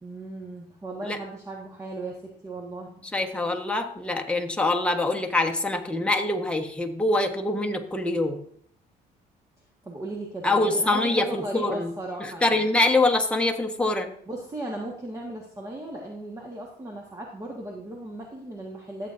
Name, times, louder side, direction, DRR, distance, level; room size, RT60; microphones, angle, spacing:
voice 1, 0.0-3.0 9.8-12.7 14.2-19.1, right 1 dB, 20° right, -1 dB, 1.5 m, -37 dB
voice 2, 3.1-8.4 10.4-11.9 12.2-14.1, left 2 dB, 5° left, 2 dB, 1.2 m, -24 dB
14.0 x 7.8 x 2.6 m, 0.64 s
cardioid pair, 110°, 17 cm